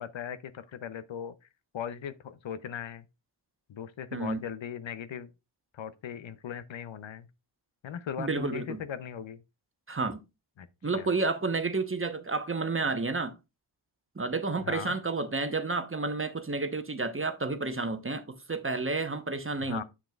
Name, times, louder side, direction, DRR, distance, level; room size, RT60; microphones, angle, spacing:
voice 1, 0.0-1.3 1.7-3.0 3.7-5.3 5.7-7.3 7.8-9.4 10.6-10.7 10.9-11.1 14.6-15.0 19.6-19.8, left 8 dB, 65° left, 0.7 m, -38 dB
voice 2, 4.1-4.5 8.2-8.8 9.9-10.2 10.8-13.3 14.1-19.8, right 3 dB, 25° right, 1.1 m, -31 dB
8.9 x 7.5 x 2.4 m
cardioid pair, 50°, 49 cm